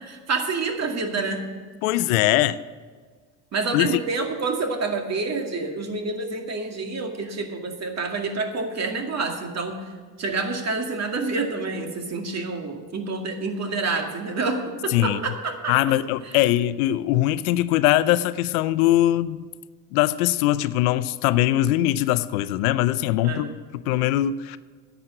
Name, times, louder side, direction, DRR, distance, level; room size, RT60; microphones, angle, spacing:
voice 1, 0.0-1.5 3.5-9.8 10.2-15.7 23.2-23.5, right 3 dB, 35° right, 4 dB, 2.2 m, -28 dB
voice 2, 1.8-2.6 3.7-4.0 14.9-15.2 15.7-19.5 19.9-24.6, left 14 dB, 70° left, 16 dB, 0.6 m, -21 dB
11.0 x 8.3 x 7.7 m, 1.5 s
hypercardioid pair, 75°, 44 cm